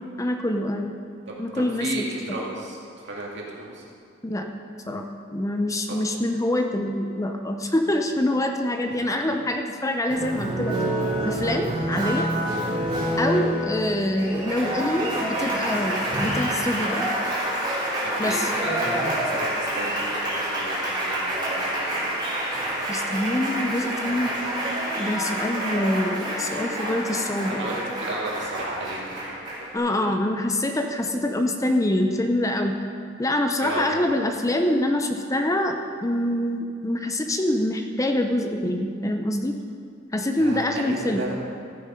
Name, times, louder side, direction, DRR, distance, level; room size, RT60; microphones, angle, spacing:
voice 1, 0.2-0.9 1.4-2.4 4.2-4.5 4.9-5.1 5.3-10.8 11.2-12.3 13.2-17.1 18.2-18.5 22.9-24.3 25.0-27.8 29.7-32.7 33.2-39.6 40.1-41.3, left 1 dB, 15° left, 5 dB, 0.6 m, -25 dB
voice 2, 1.3-2.8 3.0-3.8 5.9-6.0 13.3-13.5 18.0-22.1 27.5-29.2 33.6-33.9 40.4-41.3, right 2 dB, 65° right, -3 dB, 2.4 m, -34 dB
Applause, 10.1-29.8, right 1 dB, 25° right, 3.8 m, -27 dB
13.5 x 9.7 x 5.1 m, 2.3 s
head